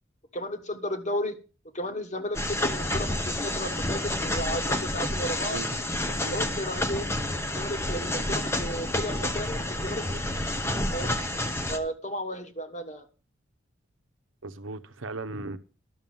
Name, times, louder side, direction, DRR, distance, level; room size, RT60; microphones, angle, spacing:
voice 1, 0.3-1.4 1.7-5.6 6.3-7.1 7.5-10.2 10.9-11.2 11.7-13.0, equal, 35° left, 1.5 m, -34 dB
sound 1, 2.3-11.8, left 1 dB, 15° left, 0.9 m, -29 dB
voice 2, 6.1-6.4 14.4-15.6, right 2 dB, 75° right, 1.0 m, -37 dB
12.0 x 7.0 x 7.2 m
head